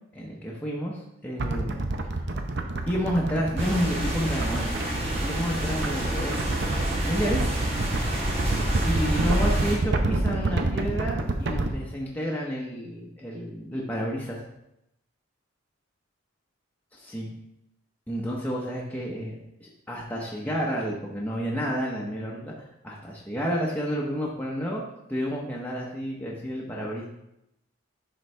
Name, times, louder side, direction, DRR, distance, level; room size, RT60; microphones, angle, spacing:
voice 1, 0.1-1.8 2.9-4.8 5.2-6.6 6.8-7.5 8.8-14.4 16.9-17.3 18.1-22.5 22.8-24.8 25.1-27.1, equal, 10° left, -4 dB, 0.8 m, -30 dB
sound 1, 1.4-11.7, right 2 dB, 55° right, 0.6 m, -29 dB
sound 2, 3.6-9.8, right 1 dB, 30° right, 1.5 m, -28 dB
10.5 x 3.9 x 3.3 m, 0.84 s
head